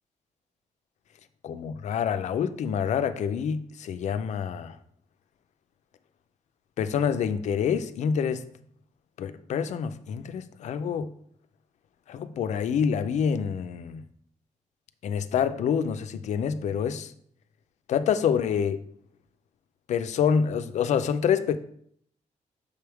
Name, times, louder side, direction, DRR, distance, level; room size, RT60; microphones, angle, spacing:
voice 1, 1.4-4.8 6.8-8.4 9.2-11.1 12.1-14.0 15.0-17.1 17.9-18.8 19.9-21.6, left 7 dB, 65° left, 0.4 m, -27 dB
6.9 x 3.5 x 4.6 m
wide cardioid pair, 160°, 13 cm